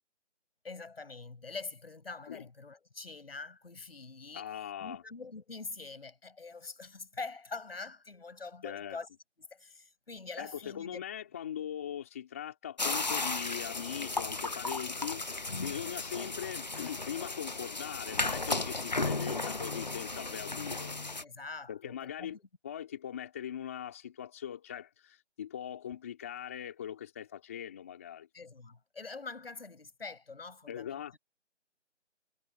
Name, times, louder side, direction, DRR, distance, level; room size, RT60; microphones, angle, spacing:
voice 1, 0.6-4.5 4.8-9.1 9.5-11.0 21.2-22.5 28.3-31.2, left 4 dB, 55° left, 7.8 m, -44 dB
voice 2, 4.3-5.0 8.6-9.0 10.4-21.0 21.7-22.4 22.6-28.3 30.7-31.2, left 9 dB, 10° left, 2.4 m, -41 dB
sound 1, 12.8-21.2, left 3 dB, 35° left, 0.9 m, -35 dB
figure-of-eight pair, 175°, 36 cm